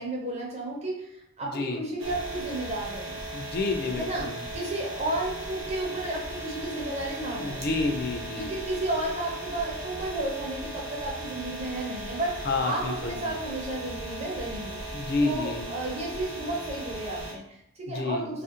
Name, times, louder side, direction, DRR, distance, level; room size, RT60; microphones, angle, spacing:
voice 1, 0.0-3.2 4.0-7.7 8.4-14.8 15.2-18.4, right 1 dB, 30° right, -3 dB, 0.7 m, -33 dB
voice 2, 1.4-1.8 3.3-4.4 7.4-8.5 12.4-13.2 14.9-15.7 17.9-18.3, left 3 dB, 50° left, 4 dB, 0.4 m, -29 dB
sound 1, 2.0-17.3, right 1 dB, 65° right, 0.8 m, -37 dB
2.7 x 2.4 x 2.8 m, 0.77 s
head